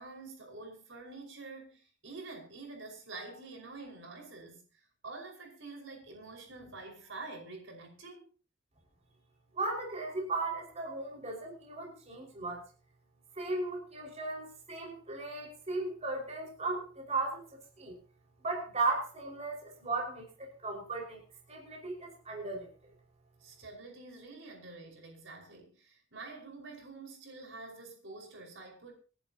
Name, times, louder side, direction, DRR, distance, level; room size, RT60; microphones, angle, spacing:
voice 1, 0.0-8.3 23.4-28.9, right 3 dB, 75° right, 5.2 m, -47 dB
voice 2, 9.5-12.6 13.4-17.5 17.8-18.0 18.4-21.2 21.5-22.7, right 3 dB, 35° right, 5.4 m, -36 dB
29.0 x 11.0 x 2.9 m
head